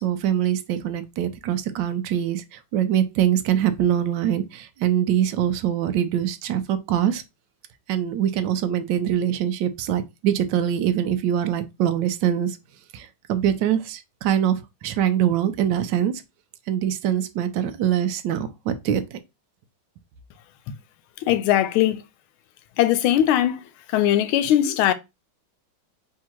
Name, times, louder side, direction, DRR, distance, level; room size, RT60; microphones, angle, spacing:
voice 1, 0.0-7.2 7.9-12.6 12.9-16.1 16.7-19.2, right 10 dB, 70° right, 1.2 m, -23 dB
voice 2, 21.2-22.0 22.8-23.6 23.9-24.9, left 12 dB, 85° left, 1.4 m, -20 dB
3.7 x 2.8 x 4.4 m
omnidirectional pair, 2.3 m